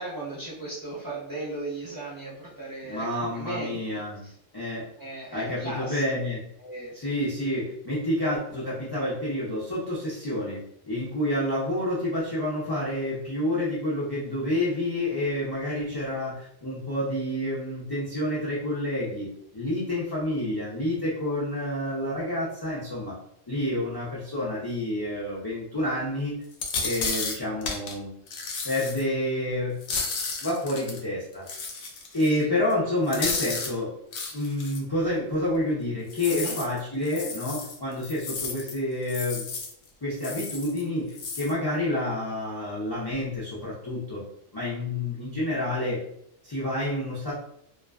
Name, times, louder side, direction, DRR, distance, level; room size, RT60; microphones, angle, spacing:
voice 1, 0.0-4.3 5.0-6.0 6.6-7.1 36.2-36.6, right 2 dB, 20° right, -8 dB, 0.7 m, -37 dB
voice 2, 2.9-4.2 4.5-4.9 5.3-6.4 7.0-10.6 10.8-23.2 23.5-26.4 26.8-28.1 28.6-29.8 30.4-31.5 32.1-33.9 34.3-39.5 40.0-44.2 44.5-46.0 46.4-47.3, left 1 dB, 40° left, -8 dB, 0.3 m, -29 dB
sound 1, 26.5-27.9 28.3-29.0 29.8-31.0 31.5-32.4 32.7-32.8 33.1-33.7 34.1-34.8 36.1-38.8 39.0-39.7 40.2-40.8 41.1-41.5, left 4 dB, 70° left, 0.9 m, -33 dB
2.4 x 2.3 x 2.2 m, 0.72 s
omnidirectional pair, 1.3 m